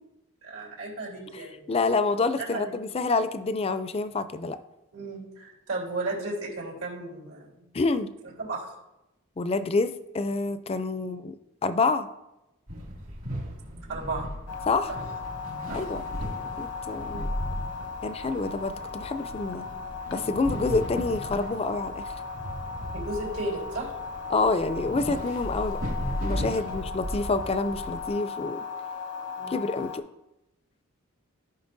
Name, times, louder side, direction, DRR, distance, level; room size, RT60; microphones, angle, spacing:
voice 1, 0.4-1.8 2.4-2.7 4.9-7.7 8.4-8.7 11.0-11.2 13.9-14.3 14.9-15.0 15.7-15.8 19.6-19.8 22.9-23.9 26.5-26.8 29.4-29.6, right 2 dB, 80° right, -5 dB, 3.1 m, -35 dB
voice 2, 1.7-4.6 7.7-8.1 9.4-11.3 11.6-12.1 14.7-14.9 15.7-16.0 16.6-17.3 18.0-19.7 20.1-22.1 24.3-25.8 26.2-28.7 29.5-30.1, left 3 dB, 25° left, 12 dB, 0.4 m, -27 dB
sound 1, 12.7-28.1, equal, 65° right, 2.3 m, -36 dB
sound 2, 14.5-30.0, left 5 dB, 85° left, 0.9 m, -37 dB
14.0 x 5.6 x 2.6 m, 0.94 s
head